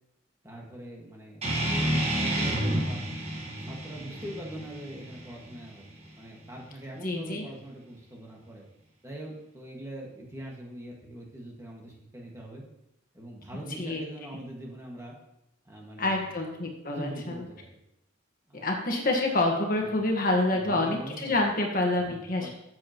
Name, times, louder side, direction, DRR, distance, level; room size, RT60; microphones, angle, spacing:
voice 1, 0.4-3.0 3.6-8.7 9.0-12.6 13.1-15.1 15.6-16.3 16.9-17.8 18.5-18.7 19.8-20.0 20.5-21.4 21.9-22.5, right 1 dB, 15° right, -2 dB, 1.8 m, -42 dB
sound 1, 1.4-6.5, right 1 dB, 30° right, 1.5 m, -30 dB
voice 2, 7.0-7.4 13.8-14.0 16.0-17.4 18.6-22.5, left 2 dB, 40° left, 1 dB, 1.5 m, -27 dB
14.5 x 7.6 x 3.1 m, 0.84 s
head